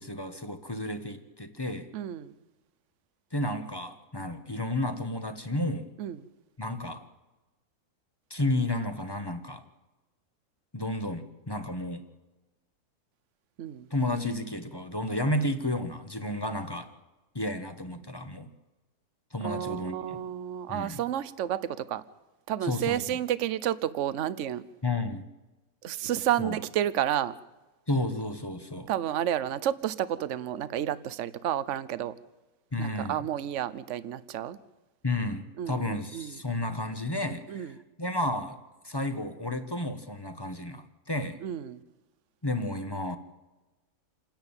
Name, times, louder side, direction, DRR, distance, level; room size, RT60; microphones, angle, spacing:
voice 1, 0.0-1.9 3.3-5.9 6.6-7.1 8.3-9.6 10.7-12.1 13.9-16.9 17.3-18.5 19.3-20.2 20.7-21.0 22.6-23.2 24.8-25.3 26.4-26.6 27.9-28.9 32.7-33.2 35.0-38.6 38.8-41.4 42.4-43.2, left 1 dB, 15° left, 1.1 m, -32 dB
voice 2, 1.9-2.3 6.0-6.2 13.6-13.9 19.4-22.0 22.5-24.6 25.8-27.4 28.9-32.1 32.8-34.6 35.6-36.4 37.5-37.7 41.4-41.8, right 11 dB, 60° right, 1.0 m, -31 dB
28.0 x 10.5 x 8.9 m
omnidirectional pair, 1.6 m